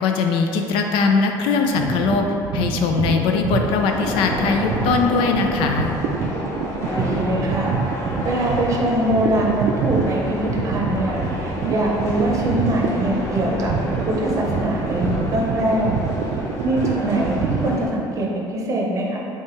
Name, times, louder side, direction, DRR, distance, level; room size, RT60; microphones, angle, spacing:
voice 1, 0.0-2.3 2.5-5.9, left 5 dB, 85° left, 4 dB, 0.4 m, -20 dB
sound 1, 1.7-17.8, right 6 dB, 75° right, 0.3 m, -27 dB
sound 2, 3.4-17.9, left 1 dB, 35° left, 0.7 m, -30 dB
voice 2, 7.0-7.8 8.2-13.7 14.1-16.0 16.6-19.2, right 1 dB, 40° right, -2 dB, 0.7 m, -23 dB
5.5 x 2.3 x 3.0 m, 2.7 s
cardioid pair, 140°, 9 cm